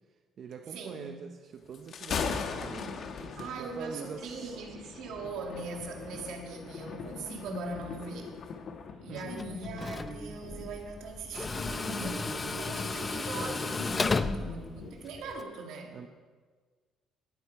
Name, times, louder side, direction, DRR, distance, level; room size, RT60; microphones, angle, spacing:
voice 1, 0.1-4.6 8.8-9.4 15.8-16.1, right 6 dB, 50° right, 0.7 m, -45 dB
voice 2, 0.7-1.3 3.4-8.4 9.0-16.0, right 4 dB, 80° right, 2.1 m, -41 dB
Thunder, 1.7-9.0, left 5 dB, 50° left, 1.2 m, -39 dB
sound 1, 5.8-14.9, left 3 dB, 75° left, 4.9 m, -43 dB
Tools, 9.2-15.4, left 3 dB, 25° left, 0.5 m, -34 dB
18.5 x 8.5 x 4.7 m
cardioid pair, 125°, 0 cm